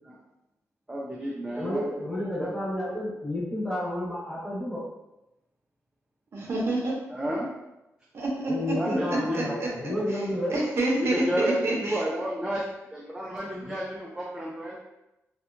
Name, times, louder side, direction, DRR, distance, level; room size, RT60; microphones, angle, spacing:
voice 1, 0.9-1.9 2.4-2.5 7.1-7.5 8.7-9.6 11.0-12.6 12.9-14.8, equal, 10° right, -4 dB, 0.3 m, -31 dB
voice 2, 1.5-4.8 8.4-10.5 13.6-13.7, left 1 dB, 15° left, -7 dB, 0.9 m, -31 dB
voice 3, 6.3-7.0 8.1-9.7 10.1-12.0, right 2 dB, 50° right, -4 dB, 0.6 m, -28 dB
2.7 x 2.1 x 2.5 m, 0.94 s
wide cardioid pair, 155°, 6 cm